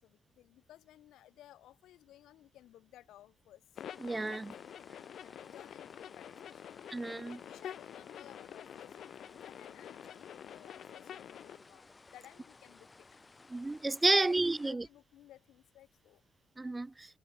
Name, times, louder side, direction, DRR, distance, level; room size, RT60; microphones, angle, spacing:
voice 1, 0.0-3.8 4.8-6.8 7.4-13.1 14.2-16.2, left 13 dB, 85° left, 2.9 m, -58 dB
sound 1, 3.7-14.7, left 3 dB, 25° left, 4.8 m, -59 dB
sound 2, 3.8-11.6, left 10 dB, 65° left, 0.9 m, -48 dB
voice 2, 4.0-4.5 6.9-7.4 13.5-14.8 16.6-16.9, right 2 dB, 20° right, 0.3 m, -30 dB
cardioid pair, 90°, 0 cm